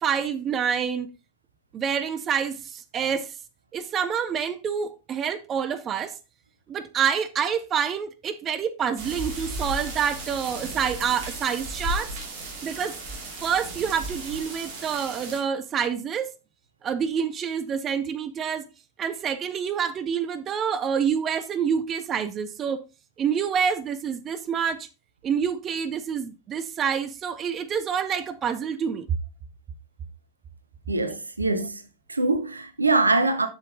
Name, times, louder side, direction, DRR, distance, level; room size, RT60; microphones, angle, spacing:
voice 1, 0.0-1.1 1.7-3.3 3.7-6.1 6.7-12.1 12.6-13.0 13.4-16.3 16.8-18.7 19.0-22.8 23.2-24.9 25.2-29.1, right 7 dB, 25° right, 0.7 m, -27 dB
sound 1, 9.0-15.4, right 1 dB, 50° right, 2.4 m, -35 dB
voice 2, 30.9-31.8 32.1-33.5, right 3 dB, 80° right, 0.9 m, -23 dB
6.9 x 6.7 x 3.8 m
figure-of-eight pair, 90°, 0 cm